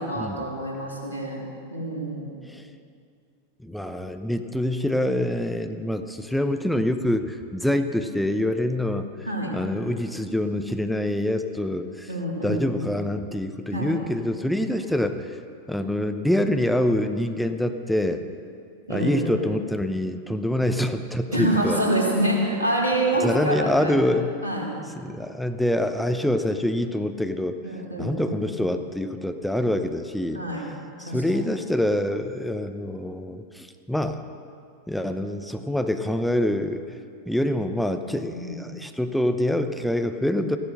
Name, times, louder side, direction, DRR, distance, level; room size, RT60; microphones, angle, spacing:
voice 1, 0.0-1.4 1.7-2.3 9.3-9.5 12.1-12.8 13.7-13.9 18.9-19.4 21.3-24.0 24.4-24.7 27.6-28.4 30.3-30.7 31.1-31.2 38.1-38.6, right 1 dB, 80° right, -4 dB, 3.5 m, -26 dB
voice 2, 3.6-9.1 9.5-12.1 12.4-15.4 15.7-18.2 18.9-21.8 23.2-24.4 24.9-27.6 28.0-30.4 31.0-34.2 34.9-37.0 37.3-40.6, left 1 dB, ahead, 7 dB, 0.8 m, -25 dB
15.5 x 11.0 x 6.5 m, 2.3 s
figure-of-eight pair, 90°, 0 cm